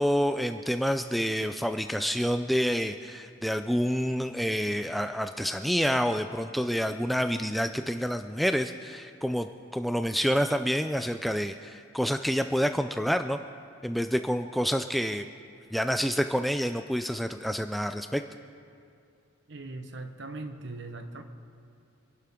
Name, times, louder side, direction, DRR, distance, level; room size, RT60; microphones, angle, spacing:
voice 1, 0.0-13.4 13.8-15.3 15.7-18.2, equal, ahead, 8 dB, 0.3 m, -28 dB
voice 2, 19.5-21.2, right 2 dB, 60° right, 7 dB, 1.1 m, -40 dB
27.0 x 11.0 x 3.7 m, 2.5 s
head